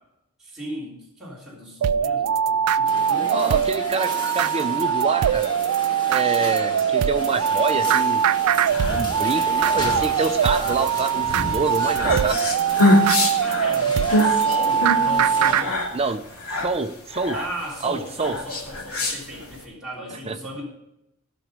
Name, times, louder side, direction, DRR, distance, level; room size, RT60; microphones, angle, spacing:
voice 1, 0.4-3.6 13.4-15.9 17.3-20.7, equal, ahead, -8 dB, 3.4 m, -35 dB
sound 1, 1.8-15.7, right 8 dB, 85° right, 0.4 m, -22 dB
sound 2, 2.8-15.6, left 1 dB, 20° left, 1.7 m, -35 dB
voice 2, 3.3-5.5 6.1-8.2 8.9-12.4 15.9-16.2 16.6-17.4 17.8-18.4 20.3-20.4, right 4 dB, 25° right, 8 dB, 0.7 m, -26 dB
sound 3, 8.4-19.6, left 1 dB, 70° left, 2.7 m, -25 dB
16.0 x 6.2 x 5.1 m, 0.85 s
head